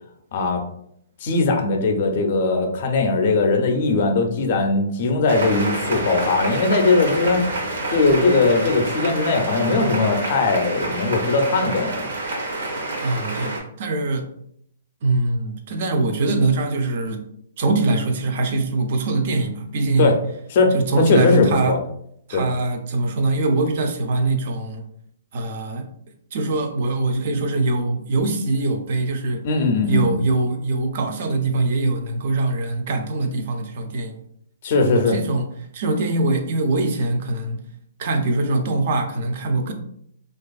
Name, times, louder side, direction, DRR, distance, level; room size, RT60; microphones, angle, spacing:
voice 1, 0.3-0.6 1.2-7.4 7.9-12.1 20.0-20.1 20.5-21.8 22.3-22.4 29.4-30.2 34.6-35.2, left 3 dB, 40° left, 4 dB, 0.4 m, -19 dB
sound 1, 5.3-13.6, right 2 dB, 80° right, 0.7 m, -28 dB
voice 2, 13.0-14.3 15.0-17.2 17.6-20.2 20.7-21.8 22.3-24.9 25.3-25.9 26.3-29.4 29.9-34.2 34.8-35.5 35.7-37.6 38.0-39.7, right 2 dB, 45° right, 5 dB, 0.4 m, -22 dB
2.5 x 2.3 x 2.3 m, 0.69 s
hypercardioid pair, 165°, 0 cm